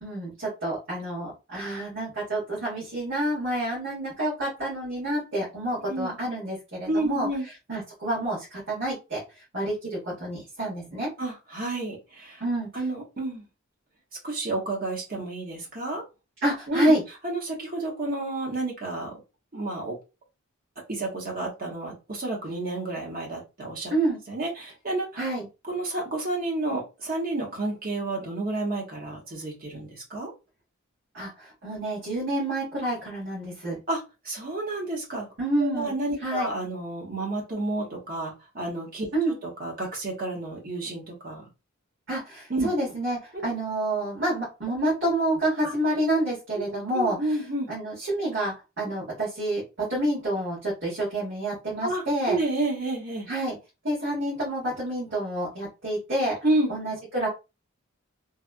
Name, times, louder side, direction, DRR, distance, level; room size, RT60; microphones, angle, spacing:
voice 1, 0.0-7.3 7.7-9.2 9.5-11.1 12.4-12.8 16.4-17.0 23.9-24.2 25.2-25.5 31.1-33.8 35.4-35.9 36.2-36.5 39.1-39.3 42.1-47.2 47.7-52.4 53.3-53.6 53.8-56.4 56.7-57.3, right 1 dB, 65° right, 1.7 m, -28 dB
voice 2, 5.8-6.1 6.9-7.4 11.2-12.4 12.7-13.4 14.2-16.0 16.7-16.9 17.2-19.1 19.5-20.0 20.9-23.9 24.3-25.2 25.7-30.3 33.9-34.0 34.2-35.3 35.6-39.1 39.4-41.4 42.5-42.7 43.3-43.4 45.6-45.7 46.5-47.7 51.8-53.3 56.4-56.7, right 2 dB, 45° right, 1.2 m, -30 dB
3.3 x 2.3 x 2.6 m
head